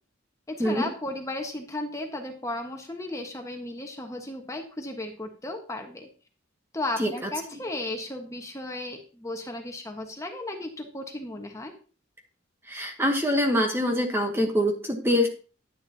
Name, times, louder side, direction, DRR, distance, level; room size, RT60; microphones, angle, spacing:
voice 1, 0.5-6.1 6.7-11.7, left 2 dB, 15° left, 3 dB, 1.3 m, -35 dB
voice 2, 12.6-15.3, equal, 10° right, 3 dB, 1.1 m, -24 dB
10.5 x 9.7 x 2.9 m, 0.37 s
head